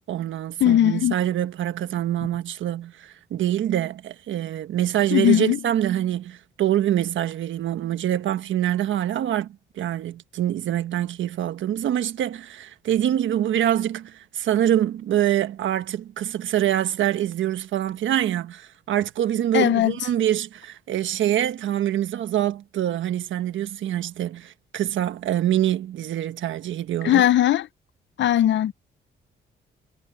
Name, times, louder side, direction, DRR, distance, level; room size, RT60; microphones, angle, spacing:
voice 1, 0.1-27.2, right 11 dB, 80° right, 1.3 m, -25 dB
voice 2, 0.6-1.1 5.1-5.6 19.5-19.9 27.0-27.7 28.2-28.7, left 12 dB, 70° left, 0.7 m, -18 dB
cardioid pair, 90°, 20 cm